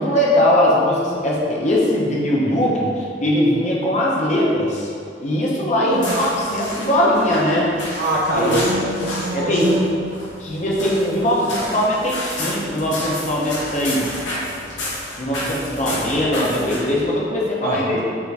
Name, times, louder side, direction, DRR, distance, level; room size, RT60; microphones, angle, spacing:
voice 1, 0.0-2.9 3.2-4.9 5.2-7.7 8.3-8.7 9.3-9.7 10.4-14.1 15.2-18.0, left 1 dB, 40° left, -4 dB, 0.6 m, -20 dB
voice 2, 5.8-6.3 8.0-9.9 17.6-18.1, right 1 dB, 55° right, -3 dB, 0.4 m, -23 dB
sound 1, 5.9-17.1, left 1 dB, 90° left, 1.1 m, -31 dB
4.6 x 2.5 x 3.2 m, 2.3 s
head